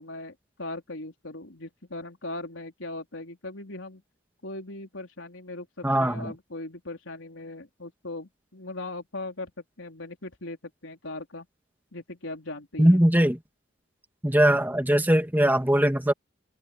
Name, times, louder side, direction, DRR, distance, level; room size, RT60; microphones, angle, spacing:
voice 1, 0.0-4.0 4.4-11.5 11.9-13.0, left 2 dB, 80° left, 3.8 m, -39 dB
voice 2, 5.8-6.3 12.8-13.4 14.2-16.1, right 1 dB, 10° right, 2.2 m, -21 dB
open air
head